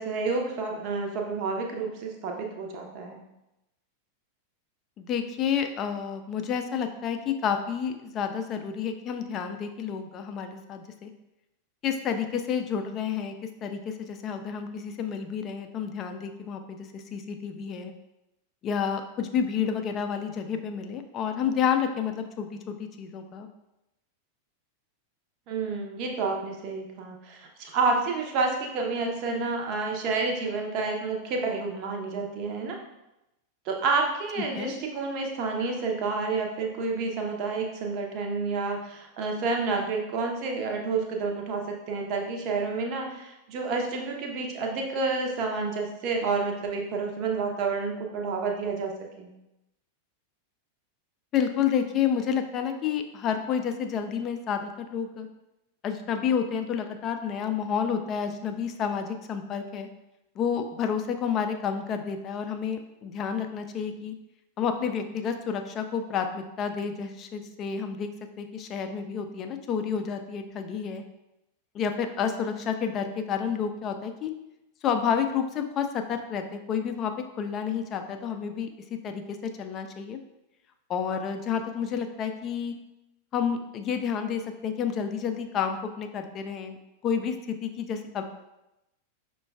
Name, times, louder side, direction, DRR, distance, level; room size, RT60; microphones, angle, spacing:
voice 1, 0.0-3.2 25.5-32.8 33.7-48.9 49.2-49.3, right 4 dB, 40° right, 1 dB, 0.6 m, -29 dB
voice 2, 5.0-11.1 11.8-13.4 13.6-17.9 18.6-23.5 34.5-34.7 51.3-55.3 55.8-59.9 60.4-64.1 64.6-68.1 68.4-71.0 71.7-74.3 74.8-80.2 80.9-82.7 83.3-86.8 87.0-88.2, left 7 dB, 30° left, 6 dB, 0.3 m, -30 dB
5.7 x 2.2 x 2.3 m, 0.93 s
figure-of-eight pair, 90°, 0 cm